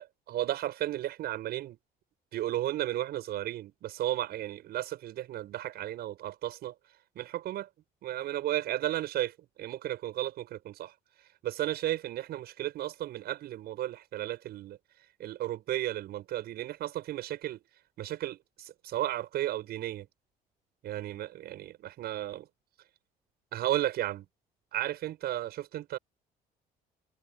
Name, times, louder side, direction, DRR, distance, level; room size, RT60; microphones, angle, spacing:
voice 1, 0.0-1.8 2.3-6.7 7.2-7.7 8.0-10.9 11.4-14.8 15.2-17.6 18.0-20.1 20.8-22.5 23.5-24.3 24.7-26.0, right 13 dB, 70° right, 7.1 m, -34 dB
cardioid pair, 110°, 17 cm